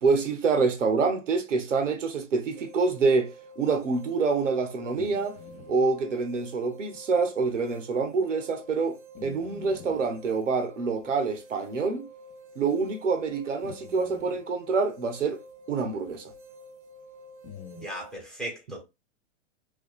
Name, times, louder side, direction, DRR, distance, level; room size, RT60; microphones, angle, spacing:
voice 1, 0.0-5.4 5.7-12.1 12.6-15.4 15.7-16.3, right 4 dB, 85° right, 0.7 m, -26 dB
sound 1, 2.6-18.2, equal, 45° right, 0.5 m, -49 dB
sound 2, 5.0-5.8 6.9-7.0 7.7-7.8 9.1-10.1 11.1-11.2 12.3-12.4 13.6-14.4 17.4-17.9, left 7 dB, 55° left, 0.7 m, -46 dB
voice 2, 17.8-18.8, right 1 dB, ahead, 0.9 m, -37 dB
2.4 x 2.3 x 2.2 m
figure-of-eight pair, 105°, 36 cm